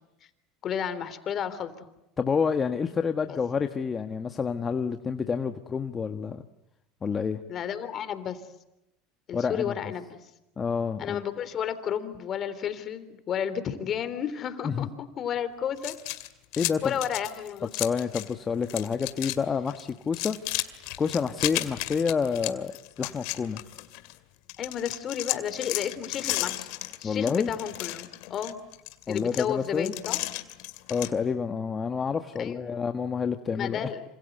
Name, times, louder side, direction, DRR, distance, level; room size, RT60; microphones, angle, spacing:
voice 1, 0.6-1.9 3.3-3.4 7.5-8.4 9.3-10.2 11.0-14.9 15.2-15.9 16.8-17.9 24.6-26.7 27.0-28.7 29.1-30.2 32.4-32.7 33.5-34.0, left 8 dB, 45° left, 12 dB, 3.5 m, -32 dB
voice 2, 2.2-6.4 7.0-7.4 9.3-9.7 10.6-11.2 14.6-14.9 16.6-16.9 17.7-20.4 21.0-22.7 23.0-23.6 27.0-27.5 29.1-29.9 30.9-33.9, left 6 dB, 30° left, 7 dB, 1.5 m, -28 dB
sound 1, 15.8-18.3 18.6-19.4 19.7-24.1 24.5-31.1, left 21 dB, 70° left, 2.4 m, -34 dB
27.5 x 26.5 x 8.1 m, 0.88 s
hypercardioid pair, 95°, 0 cm